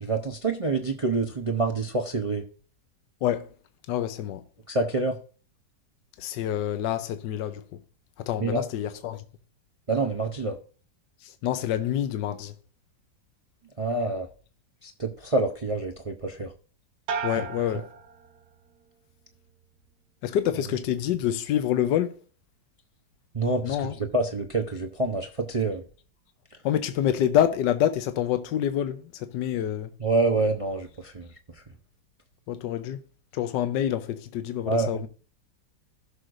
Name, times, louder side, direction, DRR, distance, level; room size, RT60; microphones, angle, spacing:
voice 1, 0.0-2.4 4.7-5.2 8.4-8.6 9.9-10.6 13.8-14.3 14.8-16.5 17.4-17.5 23.3-23.9 24.1-25.8 30.0-31.6 34.7-34.9, right 3 dB, 45° right, 0.4 m, -27 dB
voice 2, 3.2-3.5 3.9-4.4 6.2-7.8 8.2-9.2 11.2-12.5 17.2-17.9 20.2-22.2 23.6-23.9 26.6-29.9 32.5-33.0 33.3-35.1, left 10 dB, 80° left, 1.3 m, -27 dB
sound 1, 17.1-18.8 19.2-19.8, right 5 dB, 65° right, 1.3 m, -36 dB
16.0 x 6.4 x 2.5 m
omnidirectional pair, 1.9 m